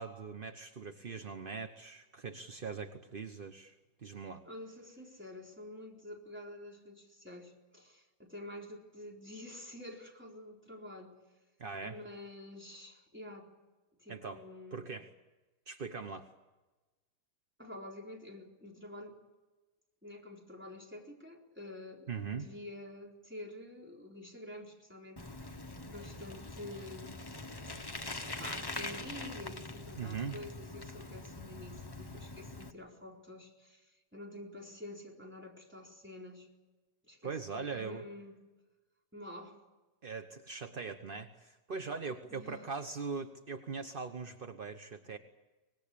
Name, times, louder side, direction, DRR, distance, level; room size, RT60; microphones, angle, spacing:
voice 1, 0.0-3.7 4.0-4.4 11.6-12.0 14.1-14.4 14.7-15.1 15.7-16.3 22.1-22.5 29.9-30.4 37.2-38.0 40.0-45.2, right 5 dB, 40° right, 7 dB, 0.7 m, -41 dB
voice 2, 4.4-11.1 11.8-13.5 14.0-14.8 17.6-19.2 20.0-25.5 25.9-27.3 28.4-36.5 37.0-38.4 39.1-39.6 42.3-42.7, left 1 dB, 5° right, -1 dB, 4.0 m, -48 dB
Bicycle, 25.2-32.7, left 2 dB, 20° left, 0.6 m, -43 dB
25.0 x 20.0 x 8.6 m, 1.2 s
omnidirectional pair, 2.4 m